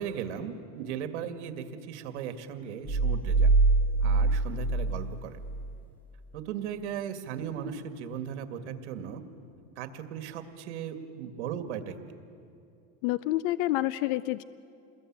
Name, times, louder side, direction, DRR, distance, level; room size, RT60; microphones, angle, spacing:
voice 1, 0.0-3.5 4.0-5.4 6.3-9.2 9.8-11.9, right 8 dB, 80° right, 7 dB, 2.1 m, -37 dB
sound 1, 2.8-5.7, right 3 dB, 5° left, 3.1 m, -24 dB
voice 2, 13.0-14.4, left 16 dB, 50° left, 16 dB, 0.5 m, -28 dB
28.0 x 21.0 x 8.8 m, 2.6 s
supercardioid pair, 165°, 34 cm